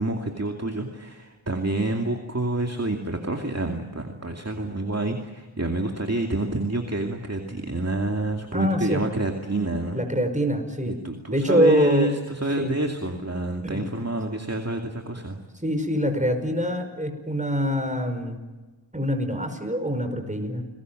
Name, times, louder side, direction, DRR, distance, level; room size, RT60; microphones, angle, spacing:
voice 1, 0.0-10.0 10.9-15.4, right 2 dB, 30° right, 3 dB, 2.5 m, -28 dB
voice 2, 8.5-9.0 9.9-10.9 11.3-12.1 12.6-12.8 13.6-13.8 15.6-18.4 18.9-20.6, equal, 15° right, 6 dB, 5.4 m, -24 dB
29.5 x 21.0 x 7.8 m, 1.2 s
wide cardioid pair, 40°, 48 cm